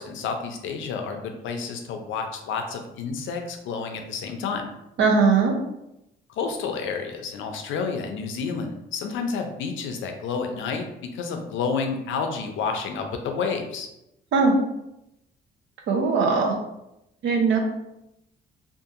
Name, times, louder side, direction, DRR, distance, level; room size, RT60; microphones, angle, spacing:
voice 1, 0.0-4.7 6.4-10.9 11.1-13.9, left 5 dB, 75° left, 4 dB, 0.5 m, -30 dB
voice 2, 5.0-5.5 14.3-14.5 15.9-16.5 17.2-17.6, right 4 dB, 70° right, 1 dB, 0.7 m, -19 dB
2.7 x 2.5 x 2.5 m, 0.86 s
cardioid pair, 90°, 20 cm